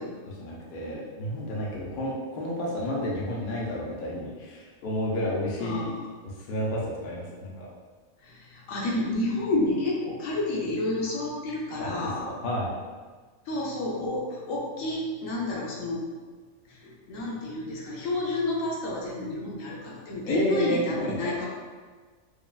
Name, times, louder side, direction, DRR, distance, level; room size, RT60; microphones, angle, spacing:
voice 1, 0.3-5.9 6.5-7.7 11.8-12.7 20.2-21.3, equal, 55° left, -4 dB, 0.6 m, -31 dB
voice 2, 5.6-5.9 8.2-12.3 13.5-16.0 16.7-21.5, left 2 dB, 75° left, -4 dB, 1.1 m, -30 dB
3.2 x 2.3 x 2.3 m, 1.5 s
omnidirectional pair, 1.4 m